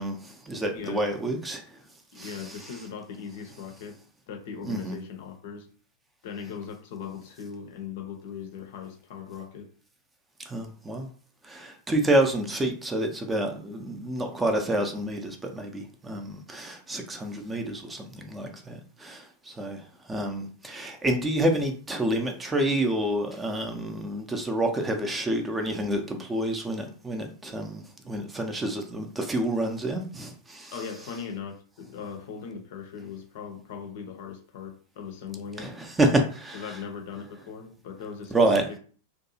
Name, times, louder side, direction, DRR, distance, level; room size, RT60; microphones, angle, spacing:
voice 1, 0.0-1.6 2.2-2.4 4.6-4.9 10.5-11.1 11.4-19.8 20.1-30.7 35.6-36.6 38.3-38.6, right 1 dB, 15° right, 0.5 m, -28 dB
voice 2, 0.7-1.1 2.1-4.0 4.3-5.7 6.2-9.7 30.7-35.7 36.5-38.8, left 6 dB, 55° left, 0.5 m, -39 dB
2.6 x 2.3 x 2.6 m
figure-of-eight pair, 90°, 0 cm